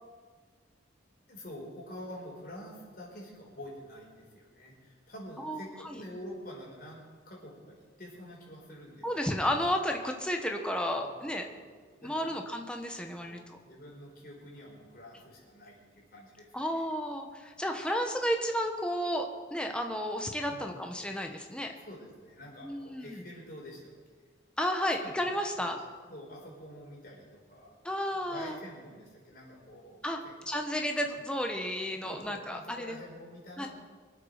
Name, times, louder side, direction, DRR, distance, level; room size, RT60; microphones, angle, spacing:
voice 1, 1.3-9.1 11.0-12.3 13.2-16.8 20.5-20.9 21.7-23.9 25.0-25.2 25.6-25.8 26.1-27.8 28.1-30.7 32.0-33.7, equal, 50° left, -3 dB, 4.9 m, -47 dB
voice 2, 5.4-6.0 9.0-11.5 12.0-13.6 16.5-21.7 22.6-23.2 24.6-25.8 27.8-28.6 30.0-30.2 30.5-33.0 33.6-33.7, equal, 5° left, 3 dB, 1.1 m, -32 dB
24.0 x 8.3 x 6.5 m, 1.5 s
head